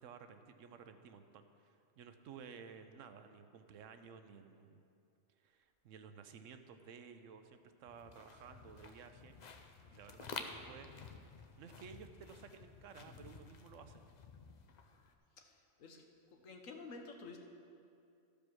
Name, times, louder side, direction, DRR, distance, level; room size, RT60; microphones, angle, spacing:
voice 1, 0.0-4.8 5.4-9.4 9.9-10.9 11.6-14.0, right 6 dB, 75° right, 8 dB, 1.0 m, -55 dB
sound 1, 7.9-15.1, left 5 dB, 50° left, 0.5 m, -52 dB
voice 2, 15.4-16.0 16.3-17.4, left 3 dB, 75° left, 3 dB, 1.4 m, -51 dB
13.5 x 5.2 x 6.2 m, 2.5 s
omnidirectional pair, 1.4 m